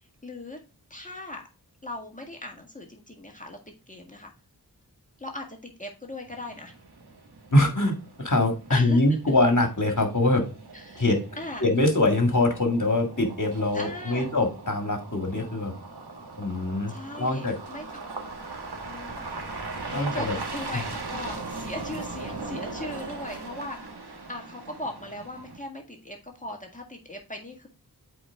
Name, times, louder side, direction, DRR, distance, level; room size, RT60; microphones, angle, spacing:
voice 1, 0.2-0.6 0.9-1.4 1.8-3.6 3.9-4.3 5.2-6.7 8.7-9.0 10.7-11.1 11.4-11.7 13.7-14.3 16.9-17.8 18.9-19.4 19.9-27.7, left 1 dB, 20° left, 1 dB, 1.8 m, -39 dB
sound 1, 6.3-25.6, right 3 dB, 85° right, 1.4 m, -39 dB
voice 2, 7.5-10.4 11.0-11.2 11.6-15.7 16.4-17.5 19.9-20.4 20.7-20.8, left 2 dB, 50° left, 4 dB, 1.9 m, -23 dB
8.0 x 4.6 x 3.6 m, 0.32 s
wide cardioid pair, 45°, 38 cm